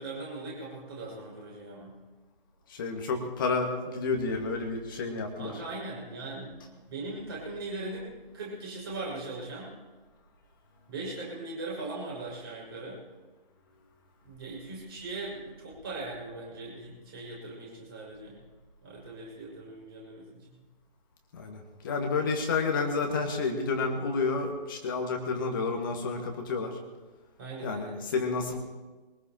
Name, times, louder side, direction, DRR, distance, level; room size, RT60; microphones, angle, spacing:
voice 1, 0.0-1.9 5.4-9.7 10.9-13.0 14.2-18.4 18.8-20.6 27.4-28.0, right 2 dB, 25° right, -4 dB, 6.1 m, -40 dB
voice 2, 2.7-5.5 21.3-26.8 27.6-28.6, left 4 dB, 20° left, 3 dB, 1.7 m, -30 dB
22.5 x 20.0 x 3.0 m, 1.3 s
figure-of-eight pair, 145°, 29 cm